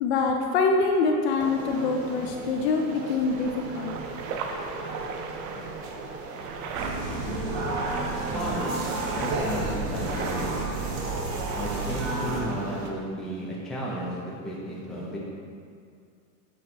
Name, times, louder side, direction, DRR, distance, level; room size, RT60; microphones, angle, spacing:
voice 1, 0.0-3.9, left 4 dB, 45° left, 2 dB, 0.5 m, -25 dB
sound 1, 1.4-12.9, right 3 dB, 90° right, 1.0 m, -38 dB
sound 2, 3.3-11.7, right 4 dB, 65° right, 0.7 m, -38 dB
voice 2, 4.6-5.0 8.3-8.8 9.1-10.5 11.5-15.2, right 1 dB, ahead, -6 dB, 0.5 m, -33 dB
sound 3, 6.7-12.4, right 2 dB, 45° right, 1.2 m, -31 dB
8.5 x 3.2 x 4.3 m, 2.3 s
supercardioid pair, 150°, 48 cm